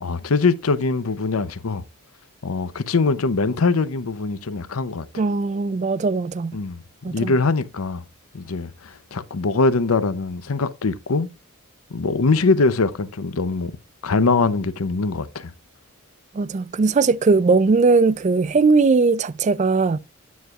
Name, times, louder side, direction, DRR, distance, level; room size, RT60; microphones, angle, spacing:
voice 1, 0.0-1.8 2.4-5.1 6.5-6.8 7.1-8.0 8.3-11.3 11.9-13.7 14.0-15.5, left 3 dB, 80° left, 0.7 m, -22 dB
voice 2, 5.2-6.6 7.0-7.3 16.3-20.0, right 4 dB, 35° right, 0.3 m, -19 dB
9.3 x 8.0 x 2.4 m
head